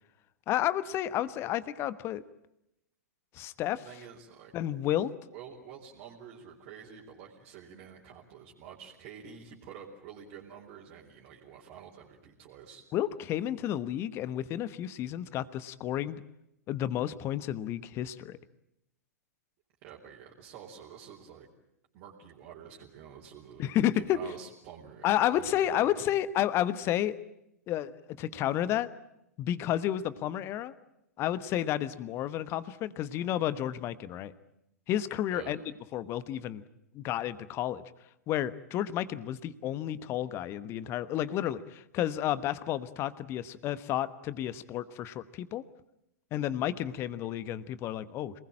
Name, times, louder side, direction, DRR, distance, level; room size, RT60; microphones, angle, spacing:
voice 1, 0.5-2.2 3.3-3.8 4.5-5.1 12.9-16.2 16.7-18.4 23.6-24.2 25.0-27.2 27.7-28.9 29.4-30.7 31.2-34.3 34.9-35.6 35.9-36.6 36.9-37.8 38.3-45.6 46.3-48.3, left 12 dB, 30° left, 16 dB, 1.2 m, -31 dB
voice 2, 3.7-4.5 5.3-12.8 19.8-21.5 21.9-26.0 35.3-35.6, right 8 dB, 35° right, -3 dB, 4.1 m, -48 dB
27.0 x 20.0 x 8.8 m, 0.83 s
figure-of-eight pair, 105°, 9 cm